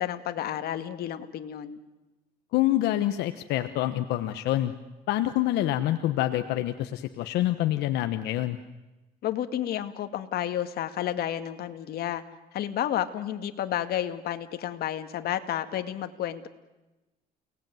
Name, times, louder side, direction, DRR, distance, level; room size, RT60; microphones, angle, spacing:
voice 1, 0.0-1.8 9.2-12.2 12.5-16.5, left 11 dB, 65° left, 8 dB, 1.9 m, -31 dB
voice 2, 2.5-4.7 5.1-8.6, left 14 dB, 85° left, 9 dB, 1.2 m, -26 dB
29.5 x 19.0 x 9.3 m, 1.1 s
cardioid pair, 110°, 17 cm